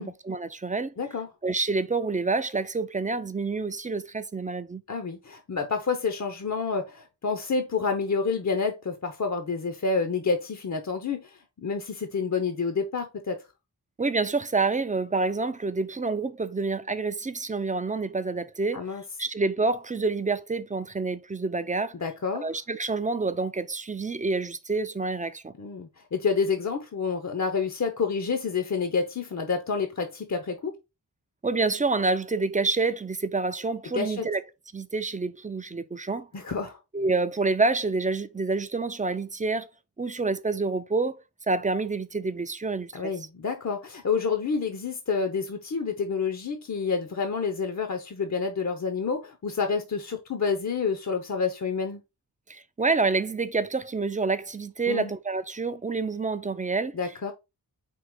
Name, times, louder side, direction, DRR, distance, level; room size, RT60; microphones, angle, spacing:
voice 1, 0.0-0.9 1.4-4.8 14.0-18.8 19.2-21.9 22.3-25.5 31.4-34.4 34.7-36.3 36.9-39.7 40.0-41.2 41.5-43.1 52.5-57.0, right 3 dB, 20° right, 0.3 m, -28 dB
voice 2, 1.0-1.3 4.9-13.4 18.7-19.0 21.9-22.5 25.6-30.7 33.9-34.3 36.3-36.8 42.9-52.0 54.9-55.1 56.9-57.3, left 5 dB, 45° left, 0.6 m, -28 dB
4.6 x 2.8 x 3.7 m
wide cardioid pair, 90°, 40 cm